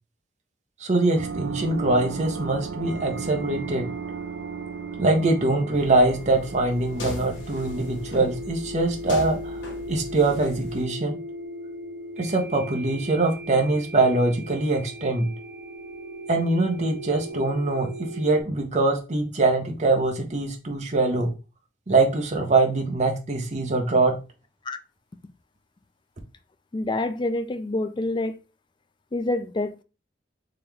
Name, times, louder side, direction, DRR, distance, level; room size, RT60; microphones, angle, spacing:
voice 1, 0.8-3.9 5.0-9.6 9.9-11.2 12.2-15.3 16.3-21.3 21.9-24.2, right 2 dB, 40° right, 0.8 m, -23 dB
sound 1, 1.1-10.3, right 6 dB, 75° right, 0.4 m, -37 dB
sound 2, 1.6-18.4, right 1 dB, 5° right, 1.5 m, -39 dB
sound 3, 5.7-10.8, left 2 dB, 65° left, 0.9 m, -40 dB
voice 2, 26.7-28.4 29.1-29.8, left 2 dB, 25° left, 0.3 m, -27 dB
3.8 x 3.0 x 3.3 m
head